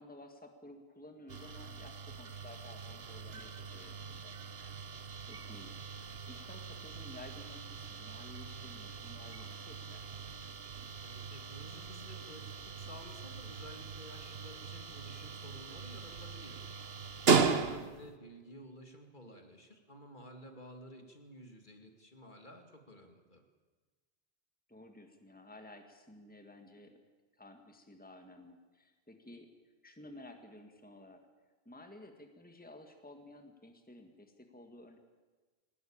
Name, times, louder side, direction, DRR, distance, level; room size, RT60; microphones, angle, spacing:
voice 1, 0.0-4.3 5.3-10.2 17.7-17.9 24.7-27.0 27.4-29.5 29.8-31.2 31.7-35.0, left 1 dB, 10° left, 5 dB, 1.8 m, -54 dB
sound 1, 1.3-18.1, right 5 dB, 70° right, 1.4 m, -38 dB
voice 2, 11.0-16.6 17.2-23.4, equal, 50° left, 4 dB, 2.5 m, -53 dB
21.5 x 19.0 x 8.8 m, 1.3 s
omnidirectional pair, 1.1 m